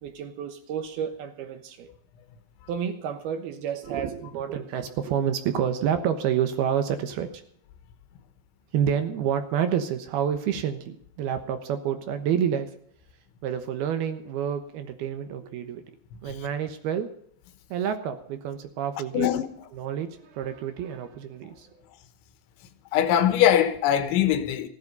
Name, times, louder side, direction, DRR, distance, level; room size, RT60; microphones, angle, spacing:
voice 1, 0.0-1.9 2.7-7.4 8.7-12.7 13.4-15.8 16.2-17.1 17.7-19.3 19.7-21.8, right 8 dB, 70° right, 2.8 m, -29 dB
voice 2, 16.1-16.5 19.1-19.5 22.9-24.7, left 10 dB, 90° left, 3.5 m, -22 dB
15.5 x 12.5 x 5.4 m
omnidirectional pair, 5.2 m